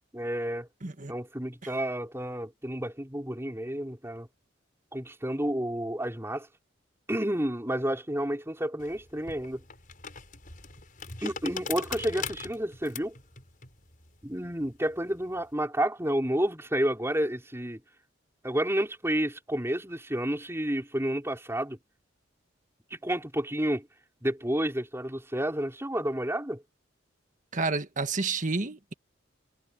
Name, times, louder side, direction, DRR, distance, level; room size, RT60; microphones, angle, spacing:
voice 1, 0.1-0.7 1.1-4.3 4.9-6.5 7.1-9.6 11.2-13.1 14.2-17.8 18.4-21.8 22.9-23.9 24.2-26.6, right 1 dB, 15° right, 4.4 m, -30 dB
voice 2, 0.8-1.1 1.6-1.7 27.5-28.9, right 3 dB, 40° right, 1.5 m, -30 dB
sound 1, 8.8-15.5, left 6 dB, 45° left, 6.3 m, -41 dB
head